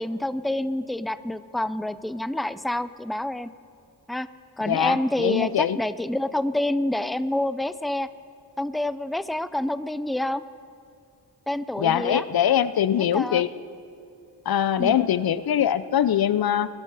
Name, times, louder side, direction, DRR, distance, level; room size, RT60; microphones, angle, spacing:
voice 1, 0.0-3.5 4.1-4.3 4.6-8.1 8.6-10.4 11.5-12.2 13.0-13.4 14.8-15.0, left 1 dB, ahead, 14 dB, 0.4 m, -27 dB
voice 2, 4.7-5.8 11.8-13.5 14.5-16.7, left 10 dB, 65° left, 15 dB, 0.6 m, -22 dB
22.0 x 11.0 x 4.1 m, 2.4 s
cardioid pair, 65°, 39 cm